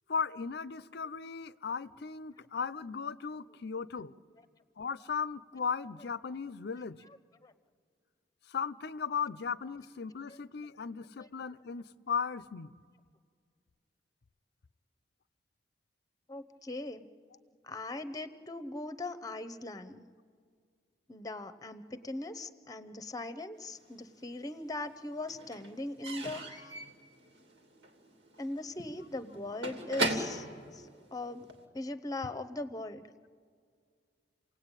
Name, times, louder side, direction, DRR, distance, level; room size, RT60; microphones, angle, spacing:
voice 1, 0.1-4.1 4.8-7.0 8.5-12.7 26.6-26.7, left 6 dB, 65° left, 0.6 m, -36 dB
voice 2, 16.3-17.0 17.6-20.1 21.1-26.6 28.4-30.5 30.7-31.5 31.7-33.0, left 2 dB, 20° left, 0.8 m, -40 dB
Slam / Squeak / Wood, 23.8-24.6 24.9-31.7, right 2 dB, 80° right, 2.8 m, -39 dB
29.0 x 18.0 x 9.0 m
head